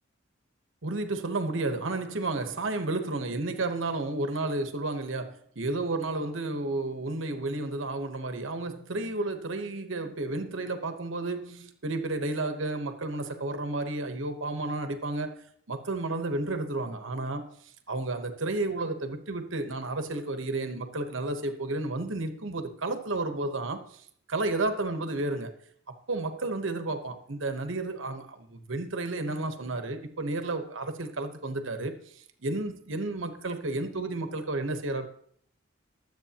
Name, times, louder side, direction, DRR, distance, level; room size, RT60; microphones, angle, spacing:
voice 1, 0.8-15.4 15.7-17.5 17.9-25.6 26.1-35.1, right 2 dB, 75° right, 7 dB, 1.1 m, -32 dB
22.5 x 7.8 x 2.9 m, 0.63 s
head